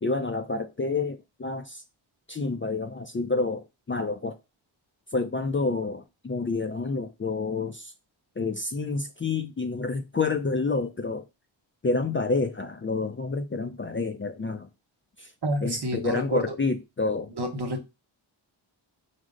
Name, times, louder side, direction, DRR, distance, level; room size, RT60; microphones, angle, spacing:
voice 1, 0.0-1.8 2.3-4.4 5.1-7.9 8.4-11.2 11.8-14.7 15.2-15.3 15.6-17.3, left 3 dB, 25° left, 0.4 m, -29 dB
voice 2, 15.4-16.5 17.4-17.8, right 1 dB, 55° right, 1.0 m, -29 dB
4.9 x 2.1 x 3.7 m
cardioid pair, 55°, 49 cm